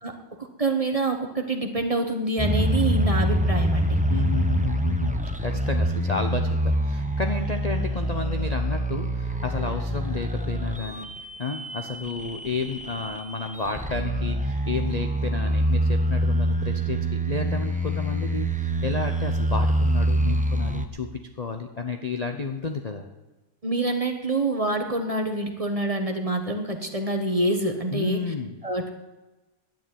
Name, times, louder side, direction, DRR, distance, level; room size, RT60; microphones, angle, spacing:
voice 1, 0.0-4.0 23.6-28.2 28.6-28.9, right 2 dB, 25° right, 4 dB, 1.2 m, -26 dB
sound 1, 2.4-20.9, right 1 dB, 10° right, 0.5 m, -25 dB
voice 2, 4.1-5.1 5.4-11.1 11.4-17.0 17.3-21.1 21.4-23.1 27.9-28.6, left 4 dB, 35° left, 5 dB, 0.7 m, -31 dB
10.5 x 9.3 x 9.2 m, 1.1 s
omnidirectional pair, 1.6 m